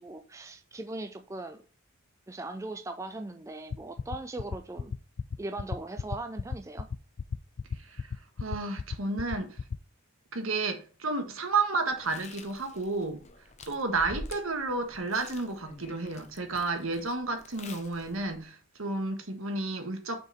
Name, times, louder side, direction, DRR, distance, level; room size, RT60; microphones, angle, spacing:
voice 1, 0.0-1.7 2.3-4.9 5.4-6.9, right 2 dB, 15° right, 0.4 m, -39 dB
sound 1, 3.7-9.8, left 5 dB, 55° left, 0.4 m, -33 dB
voice 2, 7.8-8.1 8.4-9.6 10.3-13.2 13.7-20.2, right 3 dB, 70° right, 1.5 m, -31 dB
Chewing mastication, 11.9-18.4, left 2 dB, 30° left, 0.8 m, -48 dB
6.8 x 4.9 x 4.2 m
head